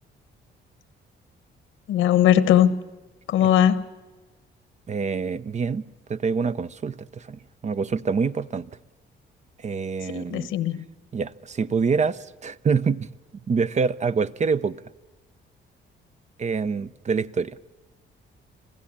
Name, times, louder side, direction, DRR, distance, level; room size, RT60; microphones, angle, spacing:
voice 1, 1.9-2.7 3.3-3.8 10.1-10.9, left 11 dB, 90° left, 1.2 m, -19 dB
voice 2, 4.9-5.8 6.1-8.7 9.6-10.5 11.1-13.1 13.5-14.8 16.4-17.6, right 5 dB, 35° right, 0.6 m, -26 dB
26.5 x 15.5 x 8.6 m
cardioid pair, 90°, 20 cm